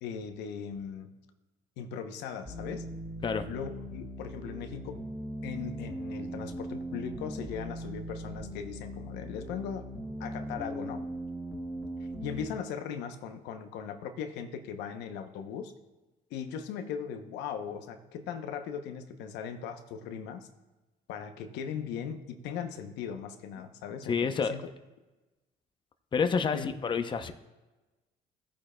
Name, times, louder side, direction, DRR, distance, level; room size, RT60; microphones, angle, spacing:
voice 1, 0.0-1.1 1.8-2.9 3.5-5.0 5.4-9.9 10.2-11.0 12.2-15.7 16.3-20.5 21.1-24.7 26.5-26.7, left 7 dB, 90° left, 7 dB, 0.7 m, -38 dB
sound 1, 2.5-12.5, right 1 dB, 5° left, 1.8 m, -39 dB
voice 2, 24.1-24.6 26.1-27.3, left 5 dB, 30° left, 8 dB, 0.6 m, -28 dB
15.0 x 8.5 x 2.2 m, 1.1 s
cardioid pair, 110°, 17 cm